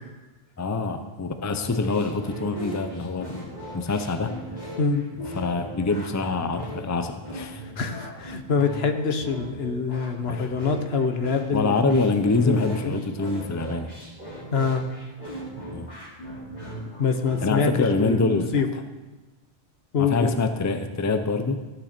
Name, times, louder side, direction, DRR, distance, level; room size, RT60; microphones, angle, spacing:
voice 1, 0.6-4.4 5.3-7.6 10.3-10.5 11.5-13.9 15.7-15.9 17.4-18.5 20.0-21.6, left 3 dB, 20° left, 7 dB, 0.6 m, -25 dB
sound 1, 1.5-17.5, equal, 40° left, 2.8 m, -38 dB
voice 2, 7.8-12.0 12.4-13.0 14.5-14.8 17.0-18.7 19.9-20.3, left 5 dB, 70° left, 6 dB, 1.3 m, -25 dB
15.0 x 9.5 x 4.4 m, 1.2 s
omnidirectional pair, 1.1 m